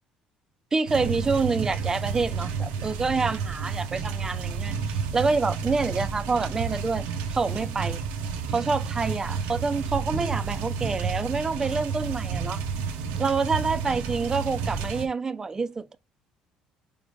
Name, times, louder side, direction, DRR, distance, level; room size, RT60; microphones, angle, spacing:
voice 1, 0.7-7.0 7.3-8.0 8.5-12.6 13.2-16.0, right 4 dB, 25° right, 0.4 m, -27 dB
sound 1, 0.9-15.1, right 5 dB, 85° right, 0.7 m, -31 dB
4.7 x 3.5 x 2.5 m
cardioid pair, 95°, 2 cm